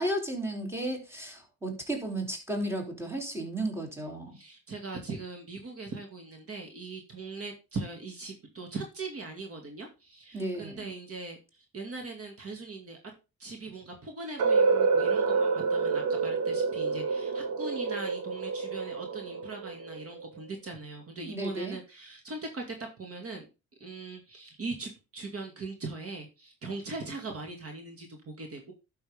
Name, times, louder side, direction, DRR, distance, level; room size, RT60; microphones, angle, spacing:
voice 1, 0.0-4.4 10.3-10.9 21.2-21.8, right 1 dB, 10° right, 2 dB, 3.4 m, -34 dB
voice 2, 4.3-13.0 13.4-23.5 23.8-28.7, right 3 dB, 50° right, 4 dB, 2.3 m, -40 dB
sound 1, 14.4-20.3, right 4 dB, 85° right, 1.9 m, -28 dB
11.5 x 6.3 x 3.6 m, 0.29 s
cardioid pair, 90°, 30 cm